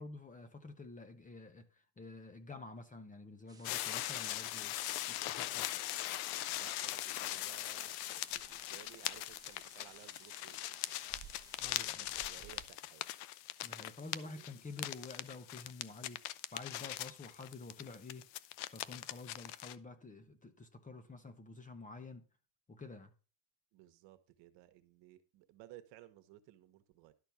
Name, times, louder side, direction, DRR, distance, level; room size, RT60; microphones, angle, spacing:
voice 1, 0.0-4.8 5.1-5.7 11.6-12.1 13.6-18.3 18.7-22.2 22.7-23.1, left 3 dB, 15° left, 1.0 m, -49 dB
sound 1, 3.5-12.7, right 5 dB, 10° right, 1.3 m, -59 dB
sound 2, 3.6-19.8, left 15 dB, 80° left, 0.8 m, -41 dB
voice 2, 6.6-10.6 11.6-13.0 14.0-14.5 23.7-27.1, right 14 dB, 60° right, 1.3 m, -58 dB
12.0 x 4.5 x 7.0 m
cardioid pair, 135°, 48 cm